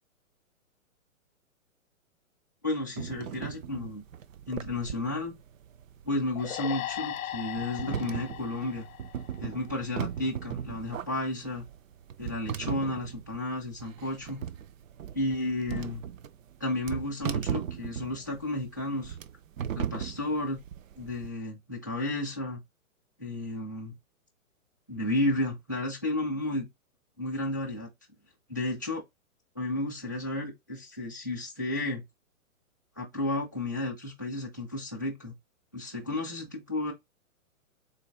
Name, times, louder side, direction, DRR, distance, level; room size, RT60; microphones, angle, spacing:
voice 1, 2.6-4.0 4.5-5.4 6.1-8.9 9.4-11.7 12.2-14.4 15.1-16.0 16.6-19.2 19.8-20.6 21.0-22.6 23.2-24.0 24.9-26.7 27.2-27.9 28.5-29.0 29.6-32.0 33.0-35.3 35.7-36.9, left 2 dB, 15° left, 0.3 m, -32 dB
sound 1, 3.0-21.3, right 8 dB, 65° right, 0.5 m, -38 dB
sound 2, 6.4-9.8, left 12 dB, 70° left, 0.6 m, -38 dB
4.0 x 2.3 x 3.4 m
hypercardioid pair, 155°, 43 cm